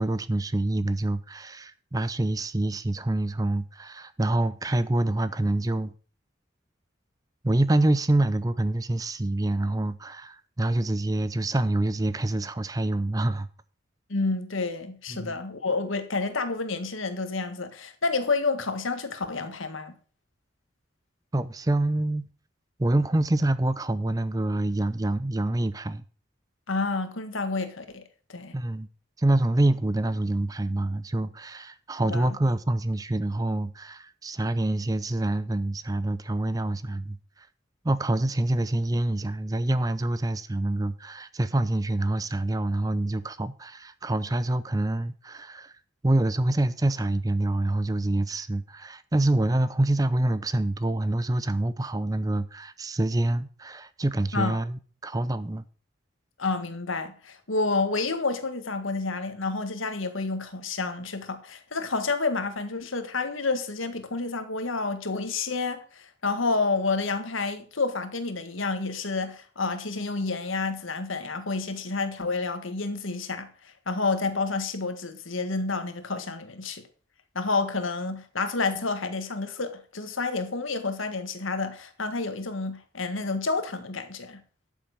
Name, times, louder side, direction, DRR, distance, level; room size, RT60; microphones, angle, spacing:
voice 1, 0.0-5.9 7.4-13.5 15.1-15.3 21.3-22.2 22.8-26.0 28.5-28.9 29.2-37.2 37.8-45.7 46.0-55.6, right 1 dB, 20° right, 0.5 m, -26 dB
voice 2, 14.1-19.9 26.7-28.0 28.3-28.6 32.1-32.3 54.3-54.6 56.4-76.8 77.3-84.4, left 3 dB, 85° left, 1.7 m, -29 dB
12.5 x 7.2 x 5.2 m
head